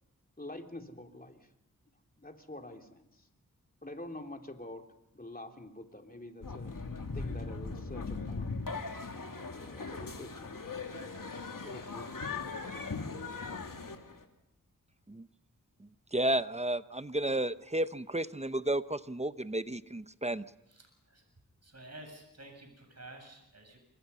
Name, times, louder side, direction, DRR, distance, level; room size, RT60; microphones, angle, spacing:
voice 1, 0.4-1.4 2.2-3.3 3.8-4.8 5.1-6.7 7.1-8.5 9.1-10.8 11.6-12.1, left 1 dB, 25° left, 4 dB, 3.2 m, -46 dB
sound 1, 6.4-14.2, left 4 dB, 65° left, 2.6 m, -39 dB
voice 2, 15.8-20.4, right 1 dB, 20° right, 13 dB, 0.9 m, -32 dB
voice 3, 20.7-21.2 21.6-23.8, right 1 dB, 45° right, 3 dB, 7.7 m, -51 dB
28.0 x 23.5 x 5.6 m, 0.83 s
cardioid pair, 50°, 35 cm